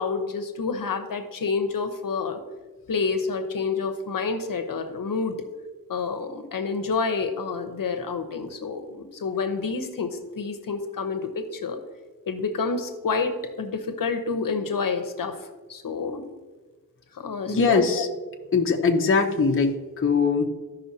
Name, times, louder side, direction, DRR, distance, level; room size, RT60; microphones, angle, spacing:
voice 1, 0.0-2.4 2.9-5.4 5.9-11.8 12.3-15.4 15.7-16.2 17.1-18.0, left 4 dB, 65° left, 7 dB, 0.9 m, -28 dB
voice 2, 17.5-18.1 18.5-20.5, left 4 dB, 35° left, 2 dB, 0.7 m, -21 dB
14.0 x 5.6 x 2.8 m, 1.3 s
wide cardioid pair, 130°, 36 cm